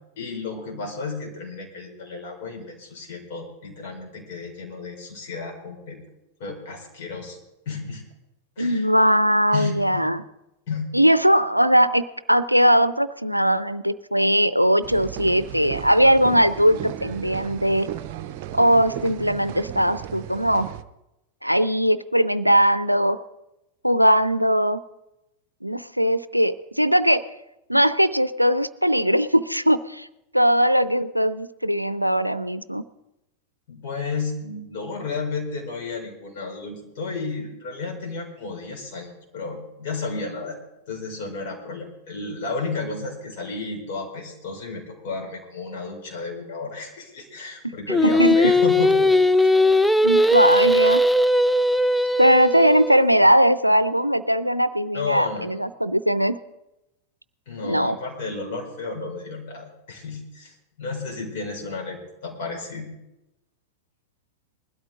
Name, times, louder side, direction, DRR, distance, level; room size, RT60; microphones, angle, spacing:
voice 1, 0.2-6.0 6.4-7.4 7.7-8.0 8.6-8.9 9.5-10.1 10.7-10.9 33.7-40.6 40.9-49.1 49.4-49.5 54.9-55.5 57.5-62.9, left 4 dB, 50° left, 1 dB, 4.5 m, -32 dB
voice 2, 8.6-10.2 10.9-17.9 18.5-20.7 21.4-23.2 23.8-24.8 25.6-27.2 27.7-30.1 30.3-32.8 47.6-47.7 48.0-48.5 50.0-51.0 52.2-56.4 57.6-58.0, equal, 90° right, 15 dB, 0.5 m, -20 dB
sound 1, 14.8-20.8, right 12 dB, 45° right, 0.6 m, -35 dB
Singing, 47.9-53.1, left 1 dB, ahead, 0.4 m, -18 dB
20.5 x 12.5 x 3.8 m, 0.93 s
figure-of-eight pair, 90°, 0 cm